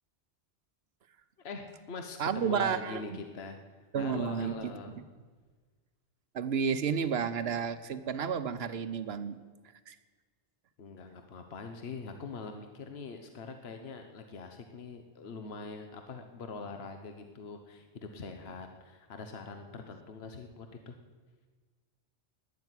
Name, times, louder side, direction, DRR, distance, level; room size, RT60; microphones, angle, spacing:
voice 1, 1.4-3.6 4.0-4.9 10.8-21.0, left 4 dB, 65° left, 6 dB, 1.3 m, -43 dB
voice 2, 2.2-3.2 3.9-5.0 6.3-9.4 9.9-10.0, right 7 dB, 65° right, 12 dB, 1.1 m, -32 dB
12.0 x 9.8 x 9.8 m, 1.5 s
omnidirectional pair, 1.1 m